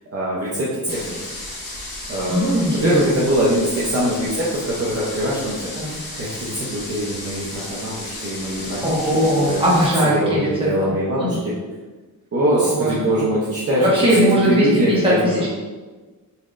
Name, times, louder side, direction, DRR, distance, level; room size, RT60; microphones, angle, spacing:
voice 1, 0.1-1.2 2.1-2.4 2.7-9.1 9.4-9.7 10.1-11.5 12.3-15.5, right 1 dB, 40° right, -7 dB, 0.6 m, -23 dB
sound 1, 0.9-9.9, left 2 dB, 70° left, 1.1 m, -34 dB
voice 2, 2.3-3.0 5.8-6.0 8.8-10.7 11.2-11.4 12.6-13.2 13.8-15.5, equal, 15° right, -7 dB, 1.0 m, -19 dB
4.1 x 3.1 x 2.4 m, 1.3 s
wide cardioid pair, 175°, 37 cm